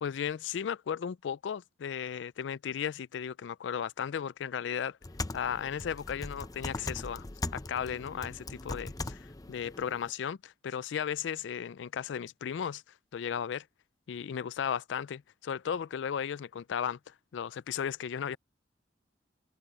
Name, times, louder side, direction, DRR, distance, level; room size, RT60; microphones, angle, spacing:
voice 1, 0.0-5.0 5.3-7.2 7.5-12.8 13.1-13.7 14.1-18.4, left 8 dB, 75° left, 0.4 m, -35 dB
sound 1, 5.0-10.1, left 2 dB, 20° left, 0.7 m, -40 dB
head